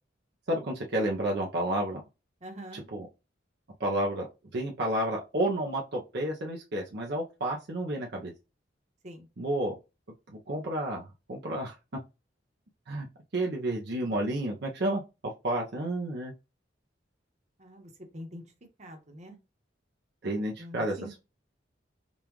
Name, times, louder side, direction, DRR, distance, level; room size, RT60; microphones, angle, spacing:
voice 1, 0.5-2.0 2.7-3.1 3.8-4.3 4.5-8.3 9.4-9.7 10.5-11.7 12.9-13.1 13.3-15.0 15.4-16.3 20.2-21.2, right 1 dB, 65° right, -1 dB, 0.7 m, -30 dB
voice 2, 2.4-2.8 9.0-9.3 17.6-18.4 18.8-19.4 20.6-21.2, equal, 40° right, 3 dB, 1.1 m, -44 dB
5.3 x 2.4 x 3.0 m, 0.28 s
head